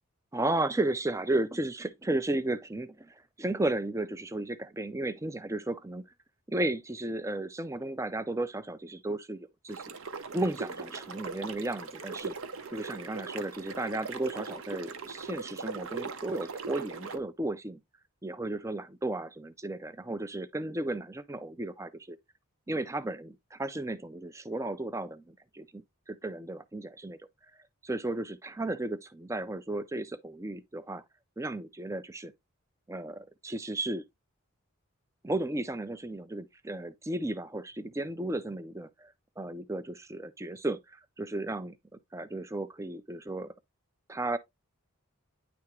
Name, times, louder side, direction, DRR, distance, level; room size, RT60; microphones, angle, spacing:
voice 1, 0.3-6.0 6.5-9.8 10.3-12.4 12.7-17.8 18.2-22.2 22.7-27.2 27.8-31.0 31.4-32.3 32.9-34.0 35.2-43.5 44.1-44.4, right 2 dB, 15° right, 0.4 m, -34 dB
sound 1, 9.7-17.2, right 4 dB, 70° right, 0.8 m, -40 dB
9.6 x 3.5 x 3.0 m
head